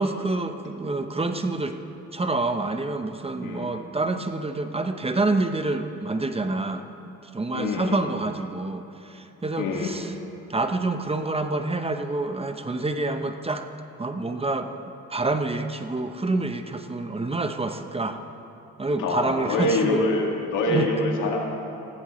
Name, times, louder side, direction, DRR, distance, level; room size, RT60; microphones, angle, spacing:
voice 1, 0.0-1.8 2.1-10.1 10.5-13.7 14.0-14.7 15.1-18.2 18.8-20.0 20.7-20.9, right 2 dB, 20° right, 7 dB, 0.8 m, -27 dB
voice 2, 7.5-8.0 9.6-9.9 19.0-21.4, left 2 dB, 85° left, 0 dB, 2.1 m, -25 dB
18.5 x 15.0 x 3.2 m, 2.9 s
cardioid pair, 90°, 30 cm